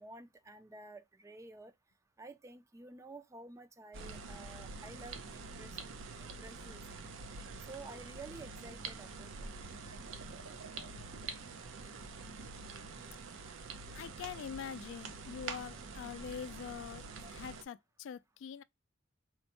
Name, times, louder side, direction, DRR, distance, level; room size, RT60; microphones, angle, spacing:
voice 1, 0.0-1.7 2.2-5.8 6.2-7.1 7.7-9.5 17.2-17.3, right 2 dB, 15° right, 0.4 m, -51 dB
sound 1, 3.9-17.6, right 4 dB, 80° right, 0.5 m, -46 dB
voice 2, 13.9-17.0 17.3-18.6, left 7 dB, 75° left, 0.3 m, -44 dB
4.3 x 2.1 x 2.8 m
head